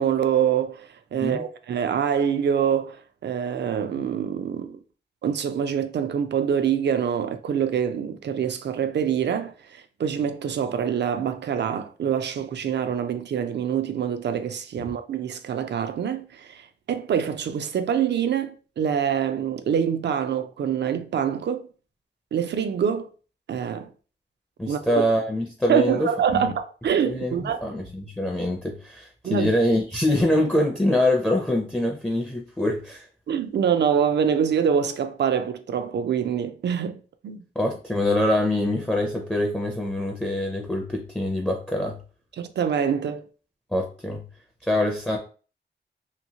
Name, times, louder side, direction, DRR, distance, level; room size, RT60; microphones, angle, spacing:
voice 1, 0.0-4.8 5.2-21.7 22.3-23.1 23.5-23.9 24.7-25.0 25.7-27.6 29.2-29.5 33.3-37.4 42.4-43.2, right 8 dB, 70° right, 0.4 m, -25 dB
voice 2, 24.6-26.4 27.0-33.1 37.6-42.0 43.7-44.2 44.6-45.2, left 1 dB, 5° left, 0.4 m, -24 dB
2.9 x 2.6 x 2.7 m
wide cardioid pair, 130°, 18 cm